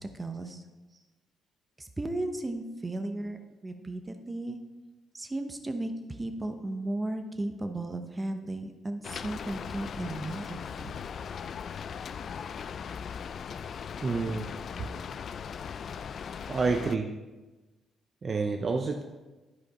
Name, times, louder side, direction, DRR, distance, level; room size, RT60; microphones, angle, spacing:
voice 1, 0.1-0.6 1.8-3.4 3.6-4.6 5.1-10.9, right 2 dB, 20° right, 6 dB, 0.9 m, -35 dB
Rain, 9.0-17.0, left 7 dB, 55° left, 0.3 m, -39 dB
voice 2, 14.0-14.5 14.8-14.9 16.5-17.1 18.2-19.0, right 4 dB, 40° right, 4 dB, 0.6 m, -29 dB
11.5 x 5.2 x 4.2 m, 1.2 s
cardioid pair, 90°, 0 cm